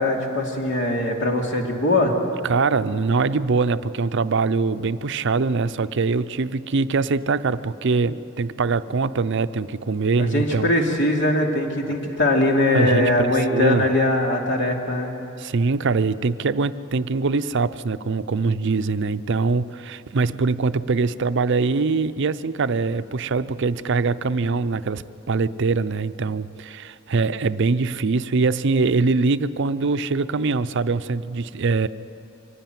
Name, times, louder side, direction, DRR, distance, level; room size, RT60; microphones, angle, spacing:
voice 1, 0.0-2.1 10.2-15.1, left 1 dB, 60° left, 1 dB, 2.8 m, -21 dB
voice 2, 2.4-10.7 12.7-13.9 15.4-31.9, right 4 dB, 60° right, 13 dB, 0.6 m, -23 dB
24.5 x 16.0 x 9.3 m, 3.0 s
head